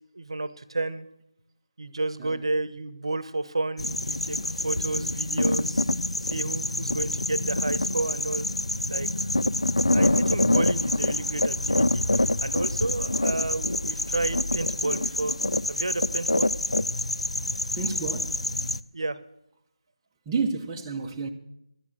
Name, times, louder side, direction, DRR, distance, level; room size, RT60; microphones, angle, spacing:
voice 1, 0.2-1.1 1.8-5.9 6.2-8.5 8.9-9.1 9.9-15.4 15.7-16.5 18.9-19.2, right 2 dB, 65° right, 0.9 m, -31 dB
sound 1, 3.8-18.8, left 1 dB, 85° left, 0.5 m, -26 dB
voice 2, 17.7-18.6 20.3-21.3, right 4 dB, 10° right, 0.9 m, -30 dB
12.0 x 9.6 x 6.7 m
figure-of-eight pair, 160°, 3 cm